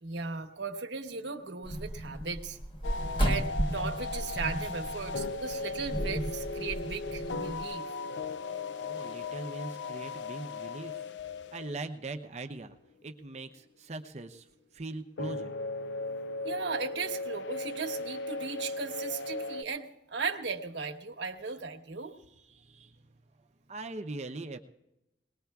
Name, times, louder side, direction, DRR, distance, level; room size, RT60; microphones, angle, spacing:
voice 1, 0.0-2.6 3.2-7.9 16.4-22.1, right 4 dB, 85° right, 5 dB, 1.1 m, -37 dB
sound 1, 1.6-7.7, right 1 dB, 30° left, 1.1 m, -34 dB
sound 2, 2.8-12.0 15.2-19.6, left 3 dB, 85° left, 0.4 m, -37 dB
voice 2, 8.8-11.1 11.5-12.7 13.0-14.5 14.7-15.6 22.3-24.6, right 2 dB, 40° right, 6 dB, 0.7 m, -41 dB
22.0 x 19.5 x 2.3 m, 0.91 s
head